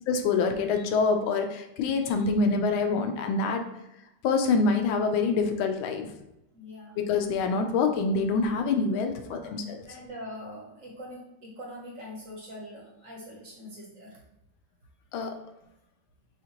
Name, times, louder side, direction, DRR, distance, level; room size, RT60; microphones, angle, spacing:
voice 1, 0.1-3.6 4.2-6.1 7.0-9.8 15.1-15.3, left 4 dB, 90° left, 5 dB, 1.4 m, -26 dB
voice 2, 6.5-7.0 9.2-9.6 9.8-14.2, equal, 50° right, -3 dB, 1.2 m, -43 dB
6.4 x 2.5 x 2.9 m, 0.90 s
omnidirectional pair, 2.1 m